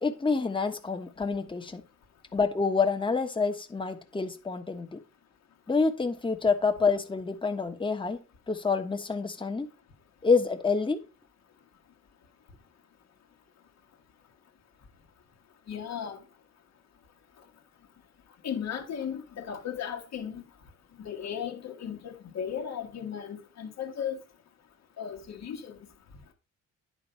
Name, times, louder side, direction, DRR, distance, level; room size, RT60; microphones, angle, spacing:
voice 1, 0.0-1.8 2.3-5.0 5.7-8.2 8.5-9.7 10.2-11.0, left 4 dB, 15° left, 1.2 m, -27 dB
voice 2, 15.7-16.2 18.4-20.4 21.0-24.2 25.0-25.8, left 8 dB, 60° left, 1.6 m, -36 dB
9.8 x 3.9 x 5.7 m
cardioid pair, 90°, 30 cm